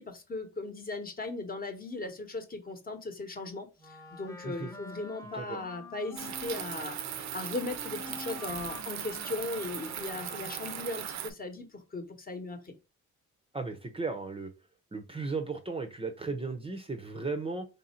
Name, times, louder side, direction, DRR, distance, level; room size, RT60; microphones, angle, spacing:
voice 1, 0.0-12.7, left 2 dB, 30° left, 1.0 m, -38 dB
Wind instrument woodwind instrument, 3.8-11.0, left 3 dB, 10° left, 0.8 m, -47 dB
sound 1, 6.2-11.3, right 10 dB, 65° right, 0.6 m, -39 dB
voice 2, 13.5-14.5 14.9-17.7, right 3 dB, 20° right, 0.6 m, -35 dB
3.3 x 2.6 x 4.2 m
cardioid pair, 90°, 30 cm